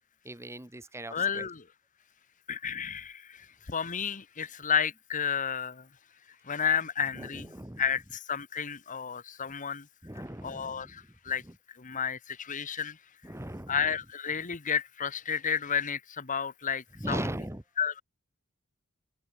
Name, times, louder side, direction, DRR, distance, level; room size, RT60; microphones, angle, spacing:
voice 1, 0.2-1.5 7.1-7.8 10.0-11.0 11.4-11.5 13.2-13.9 17.0-17.6, right 1 dB, 10° right, 1.8 m, -38 dB
voice 2, 1.1-1.6 2.5-5.9 6.4-9.9 10.4-11.4 11.7-13.0 13.7-17.3 17.8-18.0, left 7 dB, 35° left, 1.0 m, -32 dB
open air
head